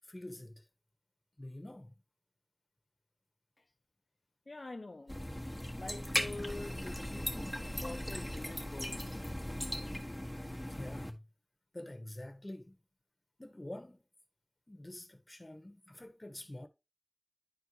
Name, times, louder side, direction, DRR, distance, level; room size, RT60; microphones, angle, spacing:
voice 1, 0.1-0.6 1.4-2.0 10.7-11.2 11.7-12.8 13.4-14.1 14.7-16.7, left 1 dB, 40° left, 1.3 m, -47 dB
voice 2, 4.5-5.2 5.4-7.4 7.7-9.4 9.9-10.0, left 2 dB, 85° left, 0.5 m, -46 dB
sound 1, 5.1-11.1, left 1 dB, 10° left, 1.5 m, -38 dB
10.5 x 4.5 x 3.0 m
wide cardioid pair, 45°, 0 cm